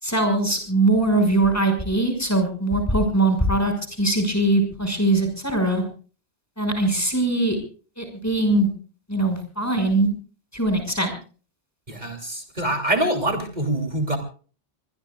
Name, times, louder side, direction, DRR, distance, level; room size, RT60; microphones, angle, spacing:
voice 1, 0.0-5.8 6.6-7.6 8.0-8.7 9.1-10.1 10.5-11.1, right 2 dB, 15° left, 5 dB, 5.9 m, -21 dB
voice 2, 11.9-14.2, right 1 dB, 45° right, 6 dB, 3.3 m, -25 dB
26.0 x 21.0 x 2.4 m, 0.40 s
omnidirectional pair, 1.0 m